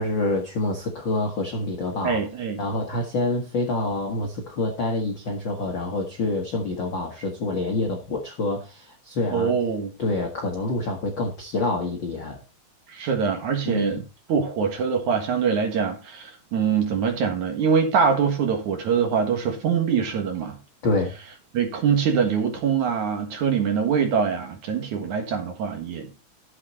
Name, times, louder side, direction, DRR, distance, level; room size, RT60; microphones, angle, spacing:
voice 1, 0.0-2.2 2.6-9.5 10.0-12.4 13.6-14.0 20.8-21.1, left 2 dB, 55° left, 1.3 m, -27 dB
voice 2, 2.0-2.6 9.3-9.9 12.9-14.0 14.3-20.6 21.5-26.1, right 6 dB, 60° right, 2.8 m, -24 dB
12.0 x 7.6 x 4.1 m
omnidirectional pair, 4.4 m